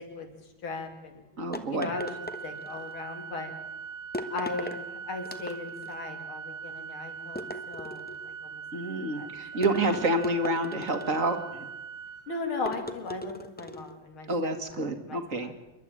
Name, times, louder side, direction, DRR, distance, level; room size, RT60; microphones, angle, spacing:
voice 1, 0.0-1.2 1.7-2.1 2.4-3.5 4.3-8.6 9.1-9.3 9.8-9.9 10.3-10.6 12.3-14.8 15.0-15.5, left 3 dB, 80° left, 5 dB, 3.5 m, -38 dB
voice 2, 1.4-1.9 8.7-11.7 14.3-15.5, right 2 dB, 40° right, 8 dB, 2.3 m, -28 dB
sound 1, 1.5-2.9 4.1-4.8 5.2-5.9 7.4-8.3 9.6-11.4 12.6-13.9, left 1 dB, 5° left, 0.8 m, -38 dB
Organ, 1.9-12.9, right 6 dB, 55° right, 1.1 m, -42 dB
28.5 x 12.0 x 9.0 m, 1.0 s
omnidirectional pair, 2.3 m